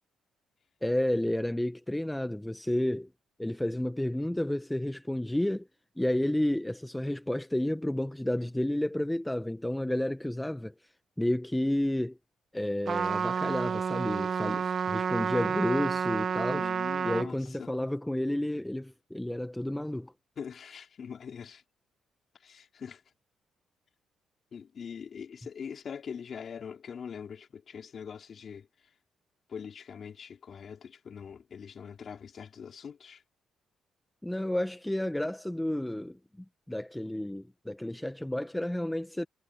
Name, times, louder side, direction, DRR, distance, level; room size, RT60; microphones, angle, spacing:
voice 1, 0.8-3.1 3.4-5.7 6.0-10.7 11.2-12.2 12.5-16.7 17.0-20.1 34.2-36.2 36.7-39.3, left 1 dB, 5° left, 0.8 m, -31 dB
Trumpet, 12.9-17.3, right 6 dB, 50° right, 0.8 m, -30 dB
voice 2, 16.5-17.7 20.4-21.6 22.4-23.0 24.5-28.7 29.5-33.2, left 7 dB, 50° left, 3.7 m, -43 dB
cardioid pair, 90°, 0 cm